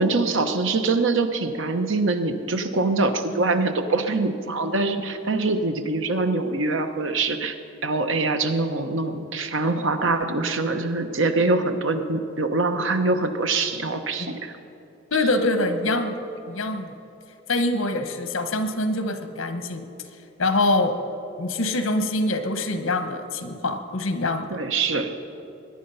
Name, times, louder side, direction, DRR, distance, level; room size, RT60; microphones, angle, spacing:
voice 1, 0.0-7.5 7.8-14.5 24.5-25.1, right 3 dB, 65° right, 7 dB, 1.0 m, -24 dB
voice 2, 15.1-16.2 16.5-16.9 17.5-19.8 20.4-21.0 21.4-24.5, left 2 dB, 75° left, 8 dB, 1.1 m, -24 dB
22.0 x 9.9 x 5.6 m, 2.8 s
head